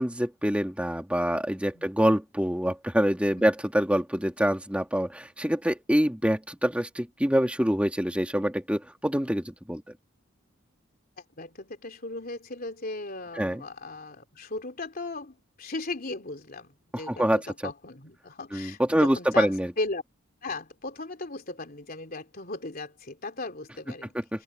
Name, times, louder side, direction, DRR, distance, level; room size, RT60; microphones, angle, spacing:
voice 1, 0.0-9.8 13.4-13.6 16.9-17.5 18.5-19.7 24.1-24.4, equal, 5° right, 2.2 m, -26 dB
voice 2, 11.4-20.0 20.4-24.1 24.3-24.4, left 2 dB, 45° left, 3.4 m, -37 dB
open air
head